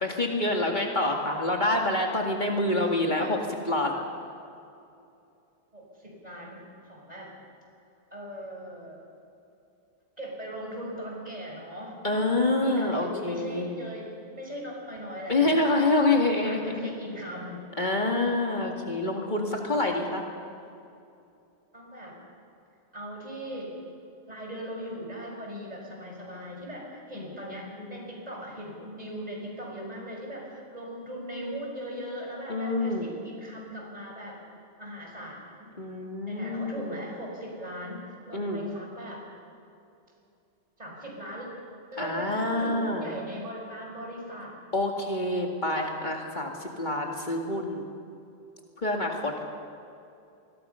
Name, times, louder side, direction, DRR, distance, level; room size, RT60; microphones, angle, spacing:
voice 1, 0.0-3.4 3.6-3.9 12.0-13.8 15.3-16.9 17.8-20.2 27.1-28.1 32.5-33.1 35.8-37.0 38.3-38.6 42.0-43.1 44.7-47.8 48.8-49.4, left 2 dB, 45° left, 0 dB, 2.3 m, -27 dB
voice 2, 2.7-3.5 5.7-7.3 8.1-9.0 10.2-12.0 12.5-15.9 16.4-17.6 21.7-22.2 22.9-23.9 24.3-34.4 34.8-35.7 36.3-39.2 40.8-41.5 41.9-44.6, equal, 40° right, -2 dB, 6.0 m, -39 dB
26.5 x 22.0 x 5.7 m, 2.6 s
omnidirectional pair, 1.1 m